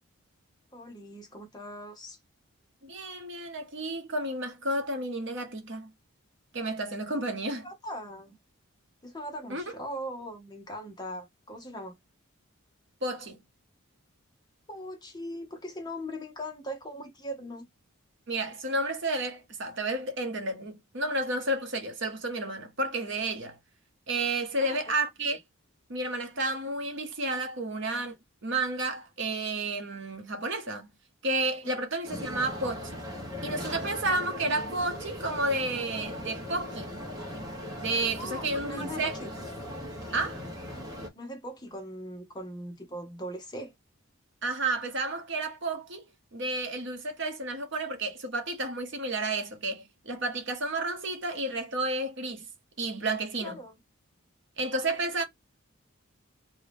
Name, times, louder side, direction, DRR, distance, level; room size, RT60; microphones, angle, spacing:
voice 1, 0.7-2.2 7.6-8.3 9.0-12.0 14.7-17.6 24.6-24.8 31.6-31.8 38.2-39.3 41.1-43.7 53.4-53.7 54.7-54.8, equal, 20° left, 0.8 m, -40 dB
voice 2, 2.8-5.9 6.5-7.7 9.5-9.6 13.0-13.4 18.3-23.6 24.1-25.4 25.9-28.2 28.4-30.9 31.2-33.0 33.4-36.9 37.8-39.1 40.1-40.4 44.4-46.0 46.3-52.4 52.8-53.6 54.6-55.2, right 2 dB, 55° right, 0.9 m, -31 dB
sound 1, 32.0-41.1, left 1 dB, 15° right, 1.2 m, -39 dB
2.8 x 2.7 x 3.4 m
head